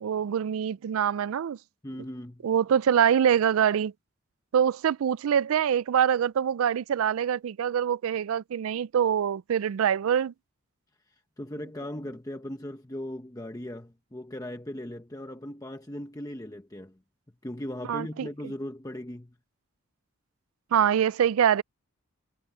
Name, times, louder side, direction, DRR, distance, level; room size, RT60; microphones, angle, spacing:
voice 1, 0.0-1.6 2.4-3.9 4.5-10.3 17.9-18.3 20.7-21.6, right 8 dB, 80° right, 0.3 m, -24 dB
voice 2, 1.8-2.5 11.1-17.0 17.4-19.4, left 1 dB, 15° left, 0.9 m, -38 dB
head